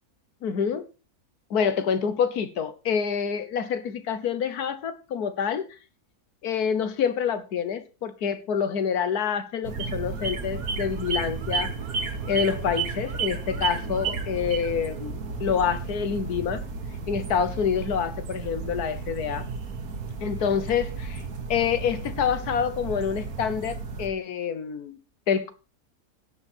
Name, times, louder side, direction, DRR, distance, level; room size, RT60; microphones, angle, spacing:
voice 1, 0.4-0.9 1.5-5.7 6.4-11.7 12.0-16.6 17.1-19.5 20.2-21.2 21.5-25.0 25.3-25.5, left 7 dB, 75° left, 1.6 m, -27 dB
sound 1, 9.6-24.1, right 5 dB, 65° right, 1.7 m, -33 dB
17.0 x 6.4 x 4.3 m
omnidirectional pair, 1.6 m